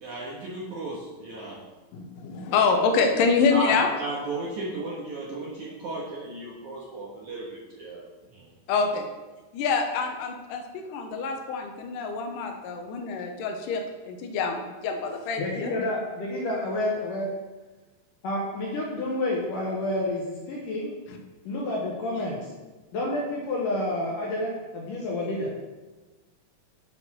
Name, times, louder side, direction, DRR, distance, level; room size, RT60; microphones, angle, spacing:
voice 1, 0.0-1.6 3.5-8.5, right 2 dB, 60° right, -6 dB, 2.2 m, -35 dB
voice 2, 1.9-3.9 8.7-9.0 9.5-13.8 14.1-15.7, left 5 dB, 85° left, 4 dB, 1.9 m, -26 dB
voice 3, 15.4-17.3 18.2-20.9 21.5-22.5 22.9-25.5, left 1 dB, 65° left, -4 dB, 2.3 m, -29 dB
8.2 x 5.2 x 6.0 m, 1.2 s
omnidirectional pair, 4.8 m